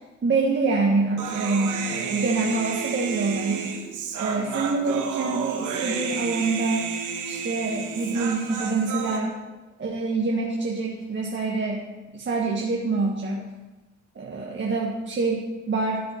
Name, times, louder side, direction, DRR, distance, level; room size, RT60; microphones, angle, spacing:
voice 1, 0.2-3.7 4.2-6.9 7.3-9.3 9.8-11.8 12.1-13.4 14.1-16.0, right 3 dB, 40° right, -2 dB, 1.4 m, -26 dB
Human voice, 1.2-9.2, right 6 dB, 80° right, 1.4 m, -31 dB
12.5 x 6.6 x 4.3 m, 1.1 s
cardioid pair, 90°, 30 cm